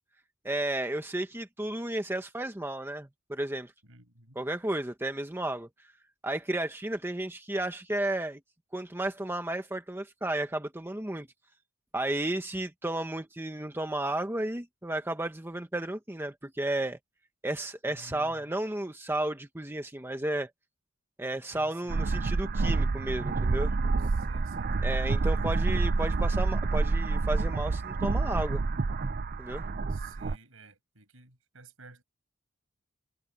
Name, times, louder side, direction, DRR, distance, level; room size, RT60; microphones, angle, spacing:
voice 1, 0.4-3.7 4.3-5.7 6.2-8.4 8.7-11.3 11.9-17.0 17.4-20.5 21.2-23.7 24.8-28.6 29.4-29.6, right 1 dB, 10° right, 1.0 m, -33 dB
voice 2, 3.8-4.4 17.9-18.5 21.5-22.0 24.2-24.7 25.2-25.3 29.9-32.0, right 2 dB, 65° right, 7.7 m, -53 dB
sound 1, 21.9-30.4, right 3 dB, 45° right, 0.5 m, -28 dB
head